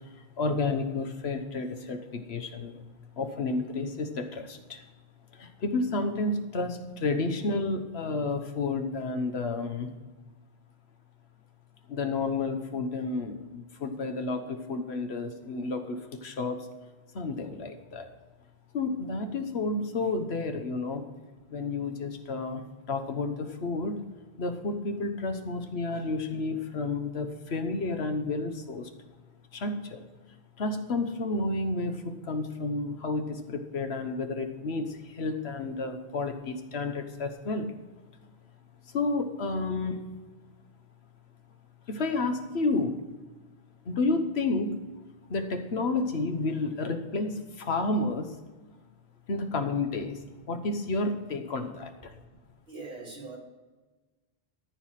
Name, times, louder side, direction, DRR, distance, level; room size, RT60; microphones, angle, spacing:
voice 1, 0.4-2.8 3.2-4.8 5.4-9.9 11.9-16.6 17.1-18.1 18.7-21.0 21.5-22.6 22.9-23.9 24.4-28.9 29.5-30.0 30.6-37.7 38.9-40.0 41.9-43.0 43.9-44.7 45.3-48.3 49.3-50.2 50.5-52.1, left 3 dB, 85° left, 6 dB, 1.4 m, -31 dB
voice 2, 52.7-53.4, right 3 dB, 70° right, -4 dB, 3.2 m, -42 dB
13.5 x 4.8 x 7.4 m, 1.2 s
omnidirectional pair, 1.0 m